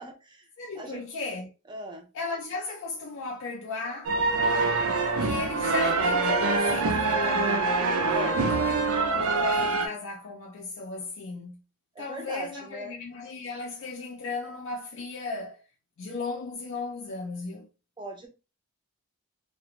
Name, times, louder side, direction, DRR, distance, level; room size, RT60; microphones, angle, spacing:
voice 1, 0.0-0.5 0.8-1.0 1.7-2.1 8.1-8.5 11.9-13.0 18.0-18.3, right 2 dB, 20° right, 0.5 m, -40 dB
voice 2, 0.6-1.5 2.1-4.2 5.2-7.8 8.4-11.6 12.0-15.6 16.0-17.7, left 3 dB, 55° left, 0.4 m, -36 dB
sound 1, 4.1-9.9, right 3 dB, 70° right, 0.5 m, -25 dB
2.4 x 2.2 x 2.8 m
head